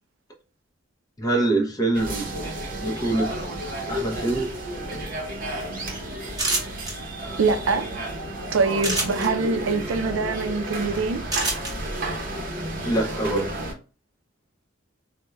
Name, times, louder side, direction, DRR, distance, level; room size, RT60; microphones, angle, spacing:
voice 1, 1.2-2.3 2.8-3.3 3.9-4.5 12.9-13.6, right 2 dB, 20° left, 0.6 m, -24 dB
sound 1, 1.9-13.7, right 1 dB, 45° right, 0.7 m, -32 dB
sound 2, 6.4-6.9 8.8-9.3 11.3-11.7, right 2 dB, 20° right, 0.9 m, -25 dB
voice 2, 7.4-7.9 8.5-11.2, right 4 dB, 75° right, 0.4 m, -24 dB
4.3 x 2.1 x 2.2 m
head